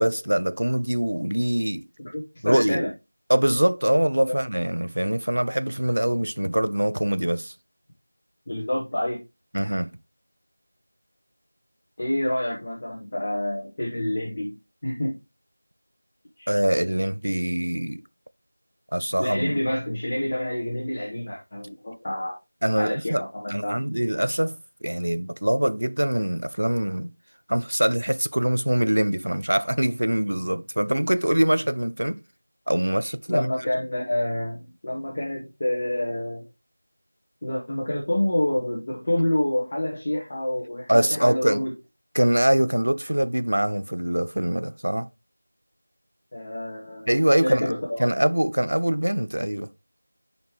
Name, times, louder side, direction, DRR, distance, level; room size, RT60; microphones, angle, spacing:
voice 1, 0.0-1.9 2.4-2.9 3.3-7.5 9.5-9.9 16.5-18.0 18.9-19.6 22.6-23.2 23.5-27.1 27.5-32.2 32.7-33.5 40.9-41.6 42.1-45.1 47.1-47.7 48.0-49.7, right 1 dB, 70° right, 0.5 m, -23 dB
voice 2, 2.1-2.9 4.3-4.4 8.5-9.2 12.0-14.5 14.8-15.2 16.4-16.5 19.2-22.4 22.8-23.8 33.3-36.4 37.4-41.7 46.3-47.1 47.4-48.1, left 1 dB, 35° left, 1.4 m, -27 dB
9.1 x 4.5 x 3.1 m
figure-of-eight pair, 175°, 0 cm